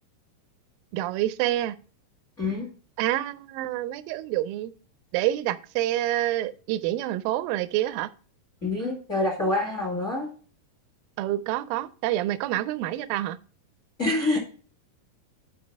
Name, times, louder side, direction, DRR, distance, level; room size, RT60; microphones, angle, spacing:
voice 1, 0.9-1.8 3.0-4.7 5.1-8.1 11.2-13.4, right 14 dB, 80° right, 2.2 m, -27 dB
voice 2, 2.4-2.7 8.6-10.3 14.0-14.4, left 2 dB, 30° left, 1.6 m, -26 dB
10.5 x 5.1 x 3.4 m
omnidirectional pair, 4.3 m